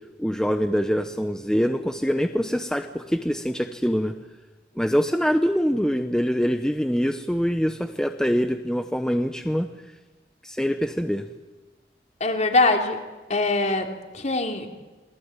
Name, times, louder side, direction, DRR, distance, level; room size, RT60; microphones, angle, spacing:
voice 1, 0.2-4.1 4.8-9.7 10.4-11.3, equal, 5° left, 7 dB, 1.0 m, -24 dB
voice 2, 12.2-13.0 13.3-14.7, left 2 dB, 40° left, 3 dB, 3.4 m, -23 dB
27.5 x 21.0 x 9.1 m, 1.2 s
head